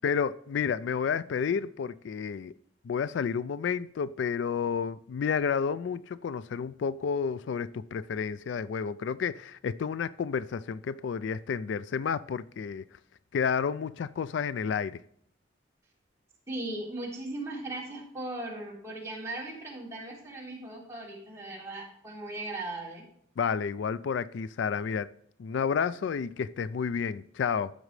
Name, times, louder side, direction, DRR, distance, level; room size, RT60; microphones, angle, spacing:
voice 1, 0.0-2.5 2.8-12.8 13.3-15.0 23.4-25.1 25.4-27.7, left 6 dB, 65° left, 0.3 m, -30 dB
voice 2, 16.5-23.0, right 2 dB, 15° right, 3.5 m, -38 dB
14.0 x 6.3 x 3.2 m
head